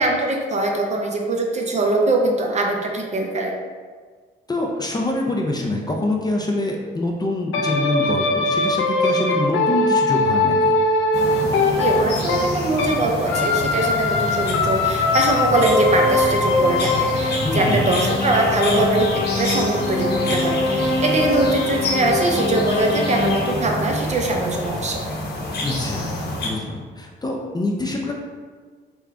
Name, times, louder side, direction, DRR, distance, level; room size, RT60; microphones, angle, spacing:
voice 1, 0.0-3.6 11.8-25.0, right 2 dB, 35° right, 1 dB, 0.6 m, -22 dB
voice 2, 4.5-10.7 17.4-17.9 25.6-28.1, left 2 dB, 20° left, 0 dB, 0.4 m, -25 dB
sound 1, 7.5-13.0 13.3-23.5, left 2 dB, 75° left, 0.5 m, -22 dB
sound 2, 11.1-26.5, left 2 dB, 55° left, 0.9 m, -28 dB
3.6 x 2.2 x 3.6 m, 1.5 s
cardioid pair, 90°, 20 cm